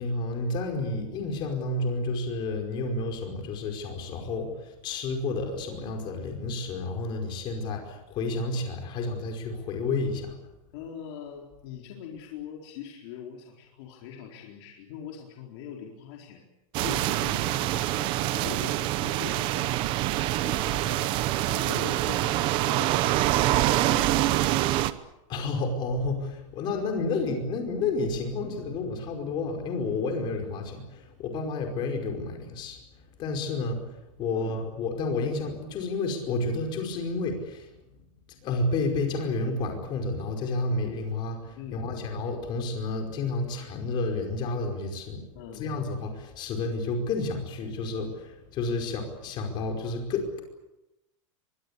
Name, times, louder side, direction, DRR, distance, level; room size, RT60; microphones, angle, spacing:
voice 1, 0.0-10.3 25.3-32.8 33.2-33.8 34.2-37.7 38.4-45.2 45.5-50.4, left 3 dB, 25° left, 4 dB, 5.1 m, -30 dB
voice 2, 10.7-16.4 16.8-19.8 20.3-21.1 21.4-24.8 27.1-27.2 34.3-34.6 41.6-42.1 45.3-45.6, left 8 dB, 45° left, 0 dB, 4.3 m, -42 dB
sound 1, 16.7-24.9, right 15 dB, 30° right, 0.9 m, -25 dB
24.0 x 22.0 x 8.4 m, 0.95 s
supercardioid pair, 175°, 17 cm